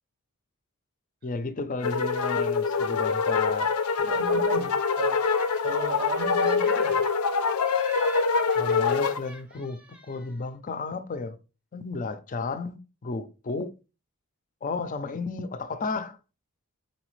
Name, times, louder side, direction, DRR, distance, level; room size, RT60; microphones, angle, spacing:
voice 1, 1.2-3.7 8.5-11.4 11.7-13.7 14.6-16.2, left 3 dB, 35° left, 0.5 m, -33 dB
sound 1, 1.8-9.2, left 5 dB, 85° left, 0.5 m, -25 dB
voice 2, 4.0-5.2 5.6-7.1, right 4 dB, 45° right, 0.6 m, -34 dB
Laughter, 5.0-6.0 6.3-7.3 7.6-10.4, right 2 dB, 5° right, 0.6 m, -46 dB
4.3 x 4.0 x 3.1 m
head